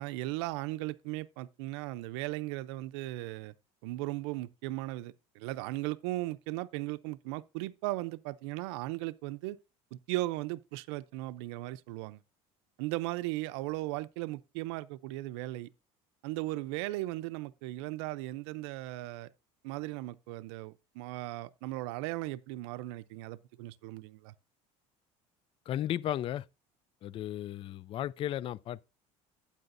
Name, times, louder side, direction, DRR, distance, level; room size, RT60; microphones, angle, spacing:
voice 1, 0.0-3.5 3.8-9.6 9.9-12.2 12.8-15.7 16.2-19.3 19.6-24.3, right 18 dB, 90° right, 0.5 m, -37 dB
voice 2, 25.7-26.5 27.0-28.9, left 12 dB, 40° left, 0.4 m, -35 dB
12.0 x 8.8 x 2.6 m
cardioid pair, 125°, 14 cm